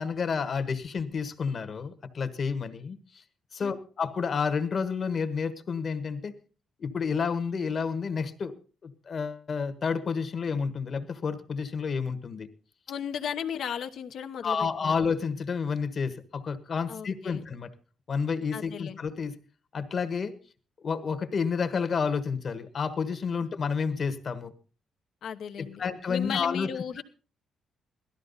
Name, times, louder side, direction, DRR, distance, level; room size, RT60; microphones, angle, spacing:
voice 1, 0.0-3.2 3.5-6.3 6.8-8.5 8.8-12.5 14.4-17.7 18.1-19.3 19.7-20.3 20.8-24.5 25.8-26.7 27.0-27.1, left 5 dB, 40° left, 11 dB, 1.3 m, -30 dB
voice 2, 12.9-14.9 16.9-17.4 18.5-19.0 23.4-23.5 25.2-25.8 26.1-27.0, left 8 dB, 70° left, 7 dB, 1.0 m, -35 dB
17.5 x 13.0 x 4.0 m, 0.36 s
cardioid pair, 140°, 0 cm